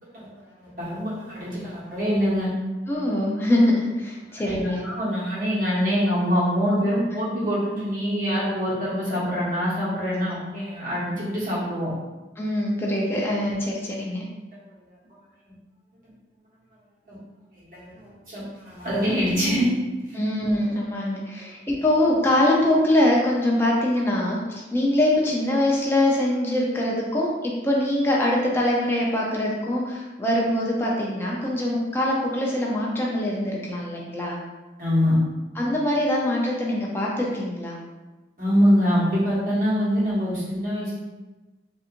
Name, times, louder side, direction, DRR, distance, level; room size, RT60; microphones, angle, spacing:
voice 1, 0.0-2.5 4.4-11.9 14.5-14.6 17.1-17.2 17.5-19.7 20.1-20.2 21.3-21.4 34.8-35.1 38.4-40.9, equal, 50° right, -9 dB, 1.4 m, -24 dB
voice 2, 2.9-4.8 12.4-14.2 20.1-34.4 35.6-37.8, left 1 dB, 15° left, -4 dB, 0.5 m, -23 dB
4.0 x 2.8 x 2.5 m, 1.2 s
head